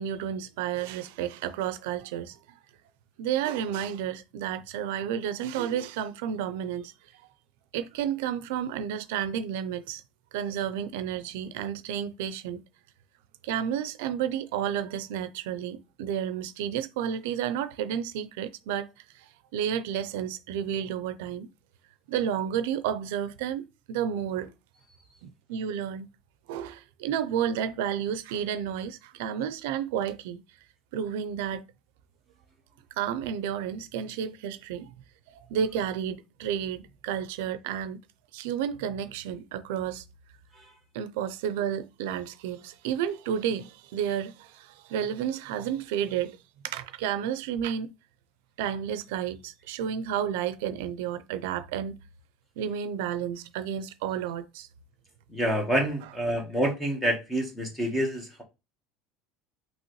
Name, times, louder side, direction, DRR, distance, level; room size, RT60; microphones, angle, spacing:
voice 1, 0.0-2.4 3.2-6.9 7.7-10.0 10.3-12.6 13.4-18.9 19.1-21.5 22.1-24.5 25.2-26.1 26.5-30.4 30.9-31.6 33.0-34.9 35.3-38.0 38.3-40.0 40.9-46.4 46.6-47.9 48.6-52.0 52.6-54.7, right 9 dB, 85° right, 0.4 m, -31 dB
voice 2, 55.3-58.4, equal, 5° left, 1.2 m, -27 dB
5.5 x 2.9 x 3.0 m
cardioid pair, 165°, 0 cm